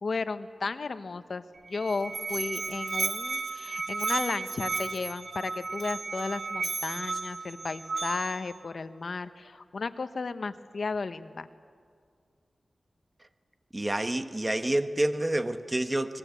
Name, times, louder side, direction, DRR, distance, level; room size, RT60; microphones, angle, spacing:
voice 1, 0.0-11.5, left 4 dB, 65° left, 1.0 m, -34 dB
Musical instrument, 1.5-8.5, right 4 dB, 85° right, 1.7 m, -33 dB
voice 2, 13.7-16.2, right 1 dB, 20° right, 1.1 m, -28 dB
25.5 x 20.5 x 8.3 m
wide cardioid pair, 90°, 0 cm